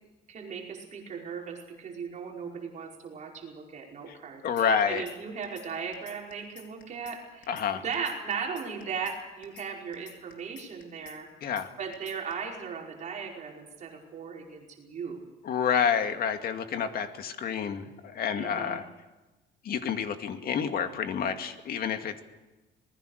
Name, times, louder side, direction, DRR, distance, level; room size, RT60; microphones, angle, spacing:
voice 1, 0.3-11.3 11.8-15.2 18.3-18.8, right 6 dB, 40° right, -1 dB, 5.1 m, -37 dB
voice 2, 4.4-5.0 7.5-7.8 11.4-11.7 15.4-18.8 19.6-22.2, left 7 dB, 55° left, 7 dB, 2.2 m, -29 dB
sound 1, 4.6-5.2 5.4-5.7 5.9-7.2 7.4-7.7 7.9-9.2 9.4-9.7 9.9-11.2 11.4-11.7 11.9-12.3, left 8 dB, 80° left, 4.1 m, -50 dB
26.0 x 20.0 x 6.6 m, 1.1 s
cardioid pair, 135°, 18 cm